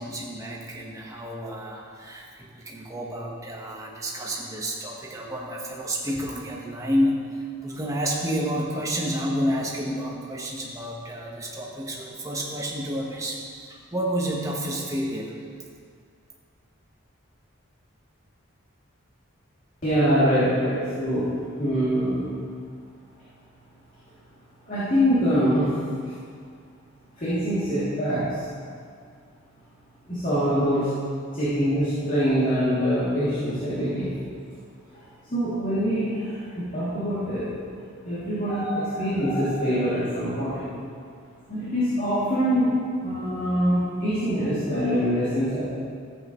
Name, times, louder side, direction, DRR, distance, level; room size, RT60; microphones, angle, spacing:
voice 1, 0.0-13.4 13.9-15.3, equal, 15° right, -3 dB, 1.3 m, -30 dB
voice 2, 19.8-22.2 24.7-25.7 27.2-28.2 30.1-30.9 31.3-34.1 35.3-36.4 36.7-37.5 38.0-40.7 41.5-42.7 43.0-45.6, equal, 40° left, -13 dB, 2.9 m, -24 dB
14.0 x 8.5 x 3.2 m, 2.2 s
head